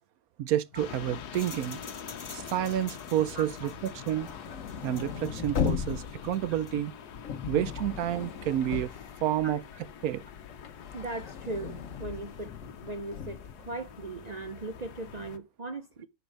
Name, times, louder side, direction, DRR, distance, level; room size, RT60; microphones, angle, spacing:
voice 1, 0.4-1.8 2.3-4.3 4.8-6.9 7.5-8.9 9.2-9.6 10.0-10.2, right 11 dB, 70° right, 1.1 m, -29 dB
sound 1, 0.7-15.4, left 8 dB, 85° left, 1.5 m, -45 dB
sound 2, 0.7-6.9, left 3 dB, 25° left, 0.7 m, -47 dB
sound 3, 3.8-9.9 10.2-13.5, left 7 dB, 55° left, 1.4 m, -37 dB
voice 2, 10.9-12.5 12.8-16.1, right 2 dB, 45° right, 0.5 m, -38 dB
10.0 x 4.6 x 5.2 m
omnidirectional pair, 1.7 m